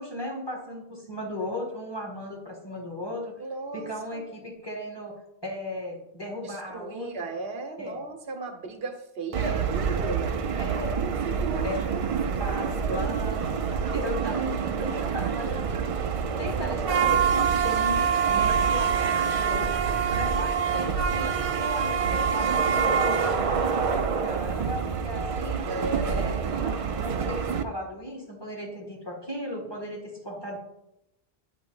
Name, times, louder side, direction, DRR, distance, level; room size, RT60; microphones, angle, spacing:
voice 1, 0.0-3.4 3.7-7.3 7.8-8.0 9.4-9.6 10.6-11.0 11.6-11.8 12.4-13.5 13.9-15.8 16.4-19.8 20.1-25.6 26.1-30.6, equal, 25° left, -1 dB, 1.5 m, -36 dB
voice 2, 3.4-4.2 6.4-10.4 11.0-12.0 12.4-13.1 25.7-26.3, right 3 dB, 70° right, 5 dB, 1.0 m, -36 dB
sound 1, 9.3-27.6, right 6 dB, 55° right, 0.4 m, -26 dB
8.8 x 3.0 x 5.4 m, 0.85 s
omnidirectional pair, 1.0 m